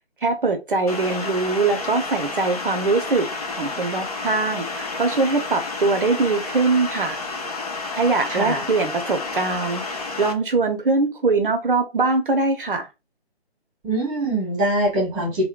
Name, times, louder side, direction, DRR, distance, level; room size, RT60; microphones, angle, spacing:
voice 1, 0.2-3.3 3.6-7.2 8.0-12.9, right 3 dB, 55° right, 0.6 m, -22 dB
sound 1, 0.9-10.3, left 3 dB, 35° left, 0.6 m, -30 dB
voice 2, 8.3-8.6 13.8-15.5, right 1 dB, 15° right, 1.1 m, -23 dB
3.6 x 2.1 x 2.2 m
figure-of-eight pair, 145°, 32 cm